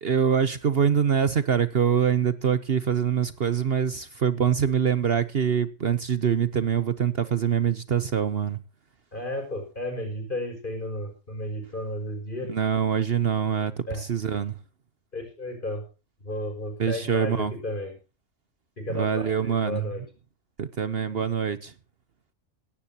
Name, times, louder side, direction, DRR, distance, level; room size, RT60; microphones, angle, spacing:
voice 1, 0.0-8.6 12.5-14.6 16.8-17.5 18.9-19.9 20.6-21.7, right 7 dB, 55° right, 1.1 m, -24 dB
voice 2, 9.1-12.5 13.9-14.0 15.1-15.8 16.2-17.9 18.8-20.0, left 1 dB, 40° left, 6.7 m, -33 dB
17.5 x 17.0 x 2.9 m
omnidirectional pair, 1.3 m